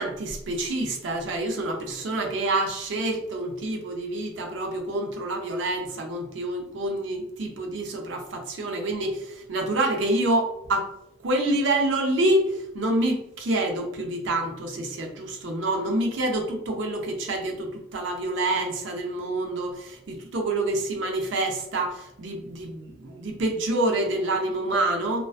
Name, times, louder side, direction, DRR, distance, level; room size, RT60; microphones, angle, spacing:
voice 1, 0.0-10.9 11.2-25.2, right 1 dB, 70° right, 2 dB, 0.5 m, -27 dB
2.4 x 2.2 x 2.4 m, 0.85 s
head